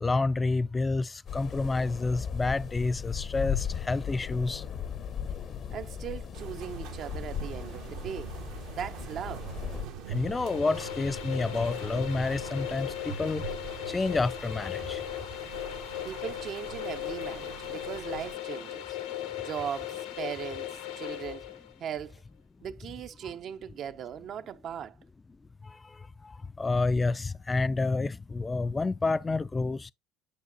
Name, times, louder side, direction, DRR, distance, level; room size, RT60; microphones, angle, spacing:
voice 1, 0.0-4.6 10.1-13.5 13.9-15.0 25.6-29.9, left 3 dB, 25° left, 0.3 m, -29 dB
sound 1, 1.3-9.9, left 8 dB, 50° left, 0.7 m, -37 dB
voice 2, 5.7-8.3 8.7-9.5 16.0-19.0 19.4-21.5 21.8-22.2 22.6-25.0, right 9 dB, 55° right, 0.6 m, -38 dB
sound 2, 6.3-18.3, right 7 dB, 75° right, 1.2 m, -43 dB
sound 3, 10.1-21.7, left 12 dB, 75° left, 0.9 m, -38 dB
8.4 x 6.5 x 2.6 m
hypercardioid pair, 70°, 0 cm